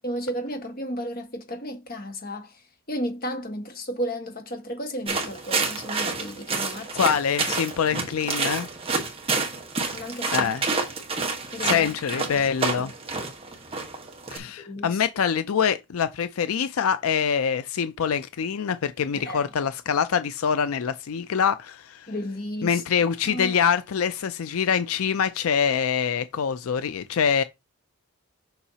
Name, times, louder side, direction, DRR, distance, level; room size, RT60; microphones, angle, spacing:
voice 1, 0.0-7.1 9.9-10.5 11.5-11.9 12.2-12.3 12.8-12.9 14.7-15.0 19.1-19.5 22.1-22.8 23.2-23.6, equal, 40° left, 1.6 m, -33 dB
sound 1, 5.1-14.4, right 4 dB, 25° right, 1.4 m, -29 dB
voice 2, 6.9-8.7 10.3-10.6 11.6-12.9 14.3-22.1 22.6-27.4, left 7 dB, 85° left, 0.4 m, -25 dB
6.9 x 5.6 x 2.9 m
head